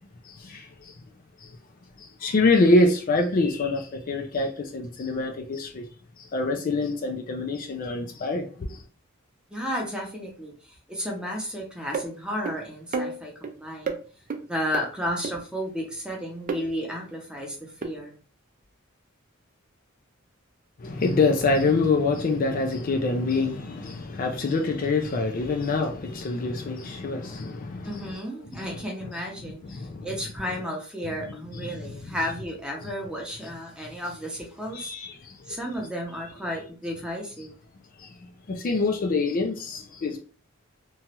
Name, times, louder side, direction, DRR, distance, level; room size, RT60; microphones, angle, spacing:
voice 1, 0.2-1.0 1.4-1.6 2.0-5.9 6.2-8.8 20.8-28.2 28.5-28.8 29.4-30.1 31.5-32.2 34.7-35.6 38.0-40.2, left 3 dB, 40° left, 0.4 m, -26 dB
voice 2, 9.5-13.9 14.4-18.1 27.8-34.9 35.5-37.5, equal, 5° right, 0.7 m, -33 dB
sound 1, 11.9-12.1 12.5-12.6 12.9-13.5 13.9-14.0 14.3-14.4 14.7-14.8 15.2-15.3 16.5-16.6 17.8-17.9, right 4 dB, 40° right, 0.4 m, -29 dB
3.0 x 2.3 x 2.9 m
head